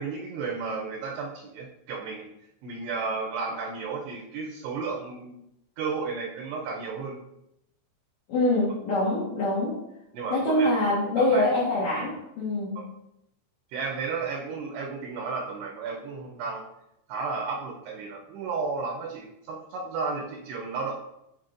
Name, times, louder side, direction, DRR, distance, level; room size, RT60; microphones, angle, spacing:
voice 1, 0.0-2.3 2.6-5.4 5.8-7.2 10.1-10.7 11.2-11.4 12.8-12.9 13.7-16.7 17.1-20.9, right 4 dB, 80° right, 0 dB, 2.5 m, -33 dB
voice 2, 8.3-9.8 10.3-12.9, left 1 dB, 70° left, -9 dB, 1.7 m, -25 dB
9.1 x 4.5 x 2.5 m, 0.82 s
omnidirectional pair, 5.3 m